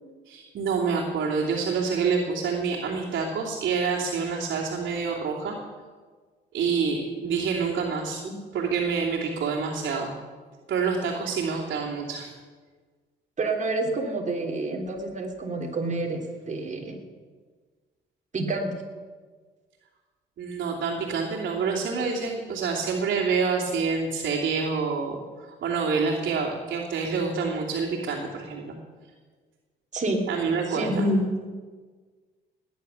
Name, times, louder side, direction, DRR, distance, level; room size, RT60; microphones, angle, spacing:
voice 1, 0.3-5.5 6.5-8.2 8.5-10.1 10.7-12.3 20.4-28.8 30.3-31.0, right 5 dB, 70° right, -5 dB, 2.9 m, -27 dB
voice 2, 13.4-17.0 18.3-18.7 29.9-30.2 30.7-31.3, right 2 dB, 40° right, 2 dB, 3.3 m, -28 dB
18.0 x 10.5 x 7.2 m, 1.5 s
cardioid pair, 90°, 20 cm